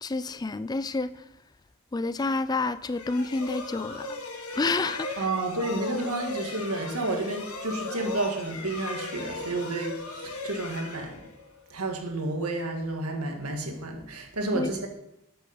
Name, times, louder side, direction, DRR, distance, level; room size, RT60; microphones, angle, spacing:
voice 1, 0.0-1.1 1.9-4.2 4.6-5.3 14.5-14.7, left 3 dB, 20° left, 0.3 m, -29 dB
sound 1, 2.9-11.7, left 3 dB, 75° left, 1.5 m, -37 dB
voice 2, 5.2-11.2 11.7-14.9, right 2 dB, 90° right, 1.8 m, -31 dB
8.8 x 8.2 x 5.7 m
head